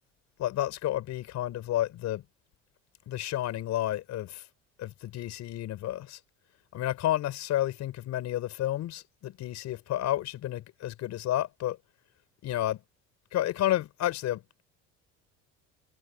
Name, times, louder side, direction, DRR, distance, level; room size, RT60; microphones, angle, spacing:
voice 1, 0.4-2.2 3.1-4.4 4.8-6.2 6.7-11.8 12.4-12.8 13.3-14.6, left 13 dB, 60° left, 4.3 m, -31 dB
supercardioid pair, 85°, 30 cm